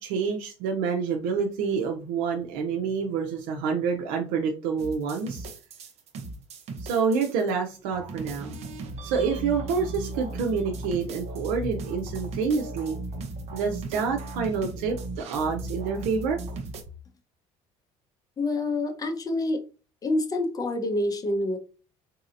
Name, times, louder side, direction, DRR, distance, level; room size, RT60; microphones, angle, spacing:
voice 1, 0.0-5.5 6.8-8.6 9.0-13.0 13.5-16.4, right 5 dB, 85° right, 2 dB, 0.6 m, -27 dB
sound 1, 4.8-7.5 7.9-16.8, right 2 dB, 55° right, 0.8 m, -37 dB
voice 2, 18.4-19.6 20.0-21.6, left 2 dB, 30° left, 5 dB, 0.7 m, -27 dB
3.9 x 2.7 x 2.5 m, 0.34 s
cardioid pair, 115°, 13 cm